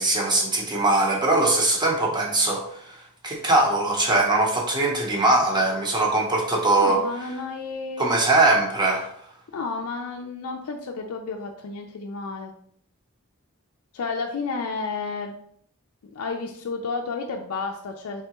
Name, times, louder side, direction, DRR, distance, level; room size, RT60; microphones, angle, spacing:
voice 1, 0.0-3.0 3.2-7.0 8.0-9.1, right 2 dB, 20° right, 0 dB, 0.7 m, -21 dB
voice 2, 6.8-8.2 9.5-12.5 13.9-15.4 16.1-18.2, left 4 dB, 70° left, 2 dB, 0.4 m, -31 dB
3.7 x 3.3 x 2.9 m, 0.66 s
head